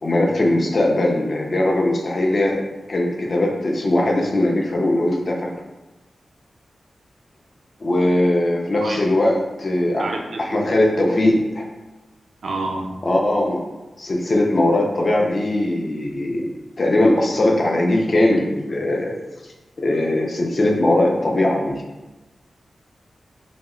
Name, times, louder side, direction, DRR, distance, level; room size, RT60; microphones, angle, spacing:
voice 1, 0.0-5.5 7.8-10.1 10.4-11.7 13.0-13.7 14.0-16.5 16.8-19.1 19.8-21.8, left 1 dB, 40° left, 0 dB, 0.4 m, -20 dB
voice 2, 10.0-11.3 12.4-12.9, right 2 dB, 70° right, 1 dB, 0.4 m, -30 dB
2.7 x 2.0 x 3.6 m, 1.1 s
wide cardioid pair, 145°, 0 cm